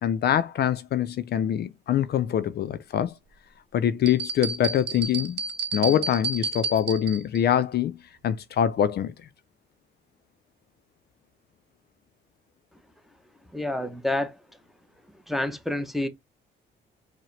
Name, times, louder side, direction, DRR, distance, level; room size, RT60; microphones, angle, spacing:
voice 1, 0.0-3.1 3.7-5.4 5.7-8.0 8.2-9.1, left 10 dB, 55° left, 0.4 m, -24 dB
sound 1, 4.1-7.4, right 4 dB, 60° right, 0.6 m, -31 dB
voice 2, 13.5-14.4 15.3-16.1, left 1 dB, ahead, 0.6 m, -28 dB
4.6 x 2.1 x 3.1 m
cardioid pair, 90°, 20 cm